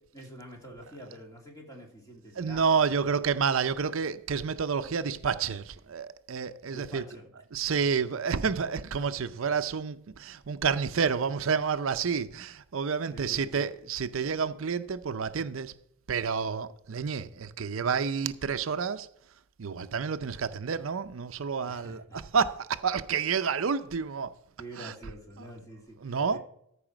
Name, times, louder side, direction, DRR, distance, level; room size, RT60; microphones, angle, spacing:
voice 1, 0.1-2.6 6.7-7.3 13.1-13.7 21.6-22.2 24.6-26.4, right 1 dB, 15° left, 2.5 m, -47 dB
voice 2, 2.4-7.0 7.5-15.8 16.1-19.1 19.6-24.4 24.8-24.9 25.4-25.5 26.0-26.4, right 6 dB, 70° right, 0.6 m, -29 dB
14.0 x 4.9 x 6.0 m
head